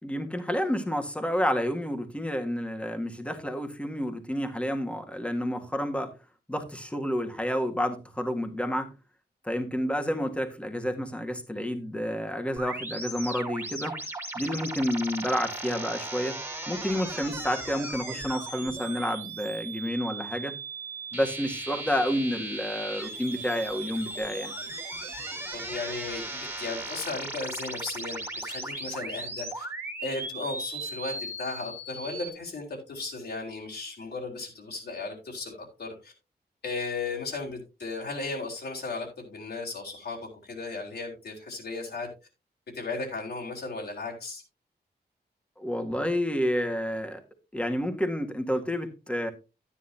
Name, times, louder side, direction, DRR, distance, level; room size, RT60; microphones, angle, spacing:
voice 1, 0.0-6.1 6.5-8.9 9.4-14.0 14.3-16.4 16.7-20.5 21.1-24.5 45.6-47.2 47.5-49.3, equal, 5° left, 5 dB, 1.7 m, -30 dB
sound 1, 12.6-32.3, right 2 dB, 15° right, 2.4 m, -37 dB
voice 2, 25.5-29.7 30.0-35.5 35.8-36.1 36.6-40.2 40.4-42.1 42.7-44.4, left 3 dB, 75° left, -2 dB, 3.7 m, -35 dB
12.5 x 10.0 x 2.8 m, 0.28 s
wide cardioid pair, 155°, 17 cm